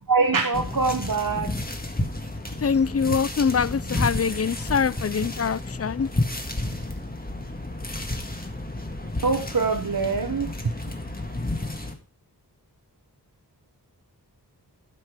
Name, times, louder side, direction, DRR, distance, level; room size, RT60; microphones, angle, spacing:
voice 1, 0.1-1.5 4.6-4.7 9.2-10.7, right 4 dB, 55° right, 1.1 m, -24 dB
sound 1, 0.5-11.9, left 2 dB, 20° left, 1.8 m, -31 dB
voice 2, 2.6-6.1, left 6 dB, 40° left, 0.4 m, -24 dB
12.0 x 5.8 x 4.8 m
wide cardioid pair, 60°, 39 cm